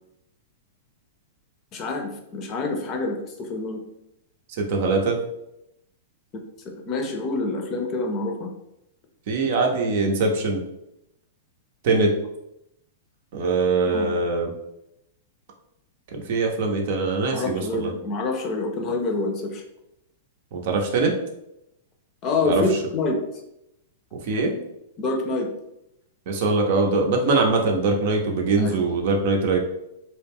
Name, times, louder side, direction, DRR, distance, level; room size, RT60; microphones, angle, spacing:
voice 1, 1.7-3.8 6.8-8.5 13.6-14.1 17.3-19.6 22.2-23.2 25.0-25.5 28.6-28.8, left 3 dB, 35° left, 2 dB, 0.5 m, -27 dB
voice 2, 4.6-5.2 9.3-10.6 11.8-12.1 13.3-14.5 16.1-17.9 20.5-21.2 22.4-22.6 24.1-24.5 26.3-29.6, right 3 dB, 60° right, 2 dB, 0.6 m, -22 dB
2.3 x 2.1 x 3.4 m, 0.84 s
hypercardioid pair, 120°, 0 cm